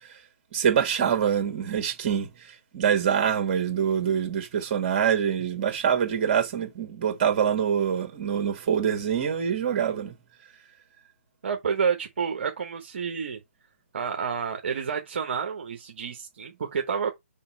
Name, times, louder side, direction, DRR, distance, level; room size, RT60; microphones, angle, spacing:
voice 1, 0.5-10.1, right 8 dB, 35° right, 1.8 m, -25 dB
voice 2, 11.4-13.4 13.9-17.1, right 6 dB, 50° right, 1.1 m, -29 dB
5.8 x 4.1 x 4.4 m
figure-of-eight pair, 140°, 8 cm